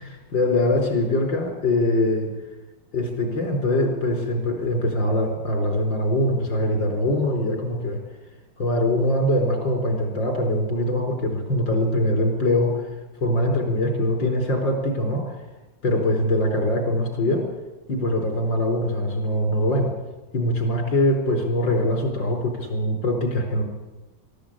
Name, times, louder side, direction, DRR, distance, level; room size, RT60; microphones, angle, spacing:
voice 1, 0.3-2.3 2.9-8.0 8.6-12.8 13.2-15.3 15.8-17.4 17.9-19.9 20.3-23.6, left 1 dB, 85° left, 3 dB, 5.0 m, -23 dB
23.0 x 13.0 x 8.9 m, 1.1 s
omnidirectional pair, 2.0 m